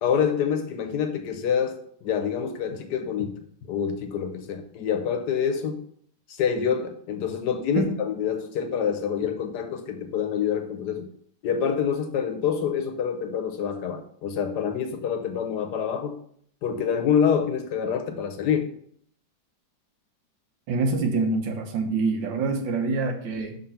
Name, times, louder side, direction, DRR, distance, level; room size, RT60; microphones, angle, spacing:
voice 1, 0.0-5.8 6.3-11.1 11.4-16.2 16.6-18.7, left 7 dB, 70° left, 6 dB, 1.4 m, -26 dB
voice 2, 20.7-23.6, right 3 dB, 80° right, 4 dB, 1.7 m, -25 dB
6.4 x 3.9 x 5.6 m, 0.62 s
omnidirectional pair, 2.0 m